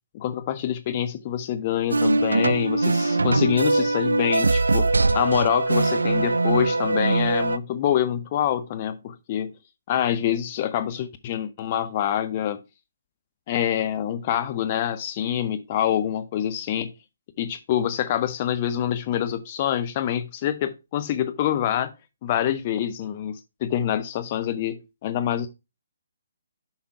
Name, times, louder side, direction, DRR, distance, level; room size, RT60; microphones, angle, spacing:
voice 1, 0.1-4.9 5.1-9.5 9.9-12.6 13.5-16.9 17.4-21.9 22.2-25.5, left 10 dB, 35° left, 0.6 m, -26 dB
sound 1, 1.9-7.6, right 2 dB, 80° right, 0.4 m, -22 dB
5.6 x 5.0 x 4.5 m
figure-of-eight pair, 140°, 0 cm